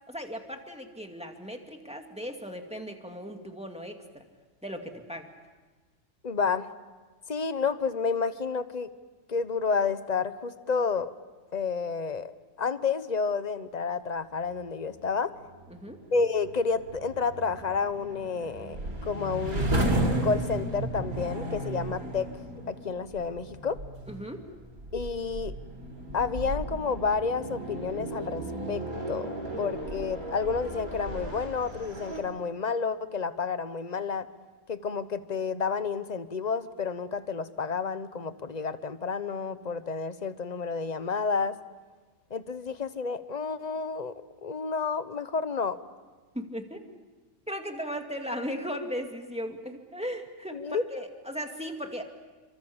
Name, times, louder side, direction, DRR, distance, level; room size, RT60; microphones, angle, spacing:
voice 1, 0.1-4.3 4.6-5.3 15.7-16.0 24.1-24.5 46.3-46.8 47.5-52.0, equal, 5° right, 3 dB, 2.3 m, -37 dB
voice 2, 6.2-6.7 7.3-8.9 9.3-11.1 11.5-12.3 12.6-15.3 16.1-18.8 19.1-19.7 20.2-22.3 22.7-23.8 24.9-25.5 26.1-29.3 29.6-34.3 34.7-41.6 42.3-44.1 44.4-45.8 50.5-50.8, left 5 dB, 30° left, 12 dB, 1.0 m, -30 dB
sound 1, 15.2-32.2, right 1 dB, 70° right, 4.8 m, -34 dB
29.0 x 25.0 x 7.2 m, 1.3 s
omnidirectional pair, 1.6 m